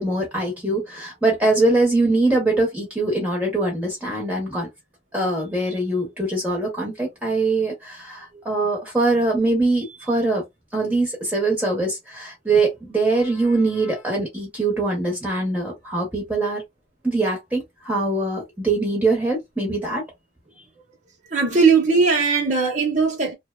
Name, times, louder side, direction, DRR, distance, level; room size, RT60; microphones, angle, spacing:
voice 1, 0.0-4.7 5.1-10.4 10.7-16.6 17.0-20.0, right 2 dB, 10° right, 0.8 m, -22 dB
voice 2, 21.3-23.3, right 4 dB, 45° right, 0.8 m, -19 dB
2.8 x 2.1 x 2.2 m
head